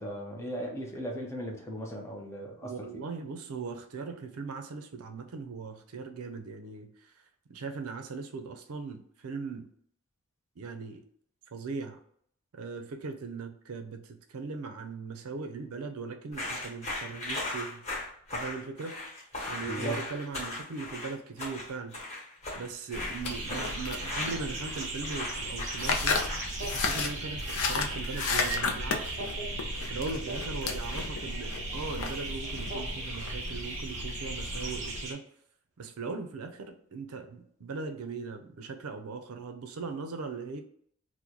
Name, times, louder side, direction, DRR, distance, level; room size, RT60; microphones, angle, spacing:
voice 1, 0.0-2.7 19.7-20.0, right 1 dB, 10° left, 0 dB, 0.6 m, -37 dB
voice 2, 2.6-7.1 7.5-9.7 10.6-11.0 11.5-12.0 12.5-17.8 18.3-19.0 19.5-22.0 22.5-26.2 26.6-29.2 29.9-35.2 35.8-40.6, right 4 dB, 75° right, 6 dB, 0.5 m, -39 dB
sound 1, 16.3-27.1, left 2 dB, 30° left, 1.1 m, -38 dB
sound 2, 22.9-35.0, left 3 dB, 70° left, 0.5 m, -34 dB
sound 3, 23.2-35.1, right 3 dB, 35° right, 0.8 m, -38 dB
3.0 x 2.1 x 3.7 m, 0.65 s
head